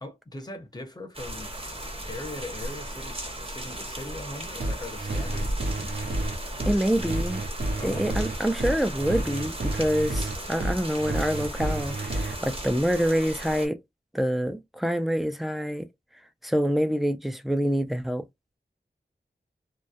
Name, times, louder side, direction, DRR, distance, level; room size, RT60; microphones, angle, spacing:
voice 1, 0.0-1.5 2.0-6.0 7.8-8.3, left 2 dB, 20° left, 0.7 m, -40 dB
sound 1, 1.1-13.7, right 1 dB, 30° right, 0.8 m, -36 dB
sound 2, 4.6-12.4, right 2 dB, 55° right, 0.5 m, -30 dB
voice 2, 6.6-7.4 7.8-13.8 14.1-15.9 16.4-18.2, equal, ahead, 0.4 m, -26 dB
2.3 x 2.0 x 2.7 m
wide cardioid pair, 60°, 19 cm